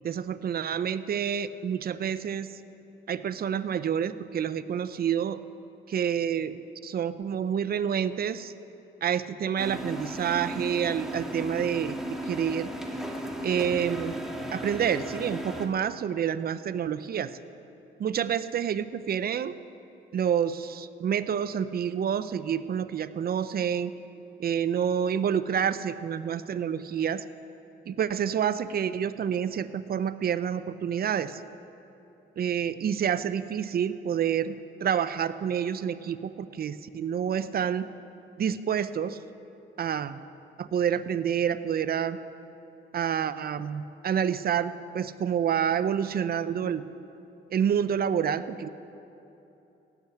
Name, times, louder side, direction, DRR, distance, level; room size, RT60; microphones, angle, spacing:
voice 1, 0.0-2.5 3.1-5.4 5.9-8.5 9.0-12.0 12.2-12.7 13.4-14.2 14.5-17.3 18.0-19.5 20.1-23.9 24.4-27.2 27.9-31.4 32.4-37.9 38.4-39.2 39.8-40.2 40.6-42.2 42.9-46.8 47.5-48.7, right 8 dB, 50° right, 14 dB, 0.7 m, -28 dB
sound 1, 9.6-15.7, equal, ahead, 2.0 m, -35 dB
16.0 x 8.6 x 10.0 m, 3.0 s
cardioid pair, 90°, 20 cm